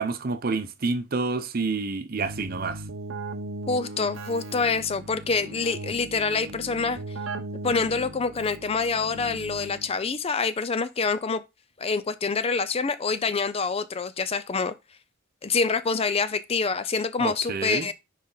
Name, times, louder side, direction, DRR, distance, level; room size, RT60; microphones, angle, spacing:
voice 1, 0.0-2.8 17.2-17.9, right 4 dB, 45° right, 0.7 m, -28 dB
Keyboard (musical), 2.2-10.0, right 2 dB, 85° right, 0.9 m, -38 dB
voice 2, 3.7-7.0 7.6-11.4 11.8-14.7 15.4-17.9, left 4 dB, 30° left, 0.4 m, -26 dB
6.4 x 5.0 x 3.9 m
head